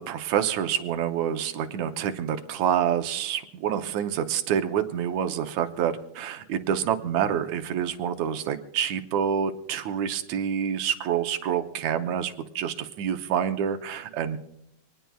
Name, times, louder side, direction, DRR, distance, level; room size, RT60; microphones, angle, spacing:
voice 1, 0.0-14.4, right 9 dB, 70° right, 7 dB, 2.0 m, -27 dB
25.5 x 19.5 x 2.3 m, 0.83 s
omnidirectional pair, 3.5 m